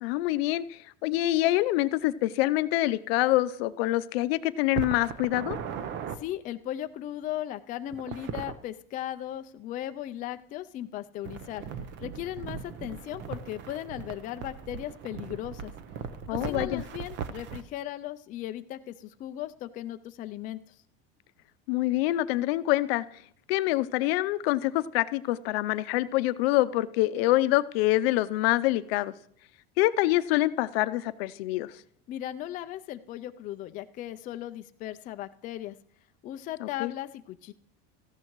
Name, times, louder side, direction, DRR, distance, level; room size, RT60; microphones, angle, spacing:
voice 1, 0.0-5.6 16.3-16.8 21.7-23.0 23.5-29.1 29.8-31.7 36.6-36.9, left 16 dB, 80° left, 14 dB, 0.6 m, -26 dB
sound 1, 4.7-6.2 7.9-8.6 11.2-17.6, right 7 dB, 40° right, 0.8 m, -38 dB
voice 2, 6.2-11.6 12.0-15.7 16.3-20.6 32.1-35.8 36.2-37.5, left 13 dB, 30° left, 9 dB, 0.4 m, -37 dB
17.5 x 14.0 x 3.1 m, 0.65 s
cardioid pair, 155°, 30 cm